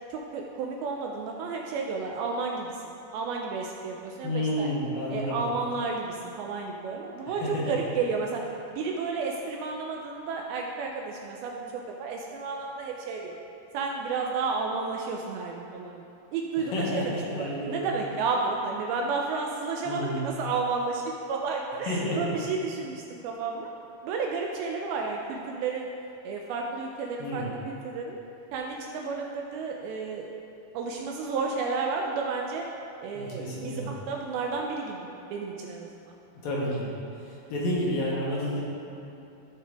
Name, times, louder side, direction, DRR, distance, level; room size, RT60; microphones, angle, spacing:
voice 1, 0.1-2.8 3.1-4.7 5.1-8.4 8.7-13.4 13.7-16.0 16.3-23.7 24.0-25.9 26.2-28.2 28.5-30.3 30.7-32.6 33.0-36.2, right 4 dB, 80° right, 0 dB, 2.4 m, -32 dB
voice 2, 4.2-5.4 7.3-7.8 16.6-17.8 19.8-20.2 21.9-22.4 27.2-27.5 33.2-33.9 36.4-36.9 37.3-38.6, left 1 dB, 70° left, -5 dB, 2.7 m, -30 dB
13.5 x 4.6 x 3.5 m, 2.8 s
omnidirectional pair, 4.5 m